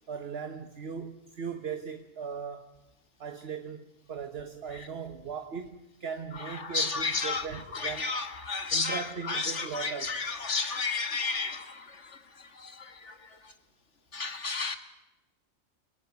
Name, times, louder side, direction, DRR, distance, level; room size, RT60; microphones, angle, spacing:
voice 1, 0.1-2.7 3.2-8.1 8.7-10.2, right 6 dB, 50° right, 8 dB, 1.4 m, -38 dB
voice 2, 6.4-7.5 7.7-13.5 14.1-14.8, left 4 dB, 60° left, 9 dB, 2.1 m, -33 dB
28.5 x 17.0 x 9.4 m, 0.96 s
omnidirectional pair, 1.4 m